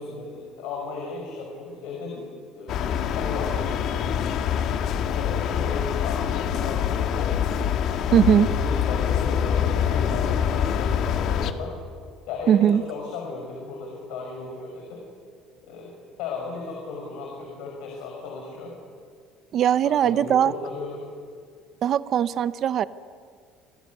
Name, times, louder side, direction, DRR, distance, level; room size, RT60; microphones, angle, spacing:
voice 1, 0.0-2.3 2.5-4.1 5.0-7.4 7.9-11.7 12.3-15.0 15.6-18.7 19.8-21.1, left 4 dB, 80° left, 0 dB, 6.2 m, -35 dB
sound 1, 2.7-11.5, left 8 dB, 50° left, 1.7 m, -25 dB
voice 2, 8.1-8.5 12.5-12.8 19.5-20.5 21.8-22.9, right 9 dB, 40° right, 15 dB, 0.7 m, -20 dB
29.0 x 20.5 x 9.8 m, 2.1 s
cardioid pair, 160°, 0 cm